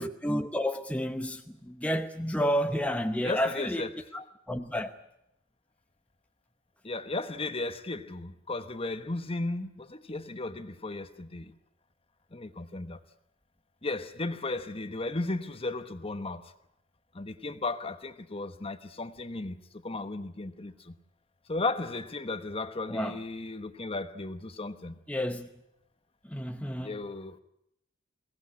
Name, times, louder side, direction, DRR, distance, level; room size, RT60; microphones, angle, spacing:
voice 1, 0.0-1.4 1.7-3.8 4.1-4.9 22.9-23.2 25.1-25.5 26.3-26.9, equal, 5° left, 0.9 m, -30 dB
voice 2, 3.2-3.9 6.8-11.6 12.3-13.0 13.8-16.5 17.1-21.0 21.5-25.0 26.8-27.4, left 2 dB, 30° left, 1.1 m, -35 dB
22.5 x 18.0 x 9.8 m
head